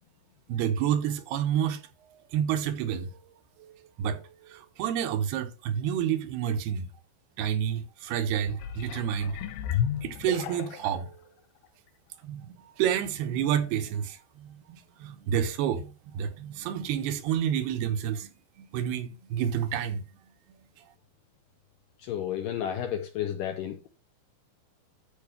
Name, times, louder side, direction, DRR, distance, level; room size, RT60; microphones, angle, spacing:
voice 1, 0.5-1.8 2.3-3.2 3.6-3.7 4.0-6.9 7.4-9.4 10.0-11.2 12.2-18.3 18.7-20.0, right 9 dB, 85° right, 2.9 m, -29 dB
sound 1, 8.4-11.0 11.6-11.7, left 10 dB, 90° left, 2.9 m, -33 dB
voice 2, 22.0-23.9, left 10 dB, 75° left, 2.2 m, -32 dB
13.5 x 5.0 x 3.3 m
omnidirectional pair, 4.6 m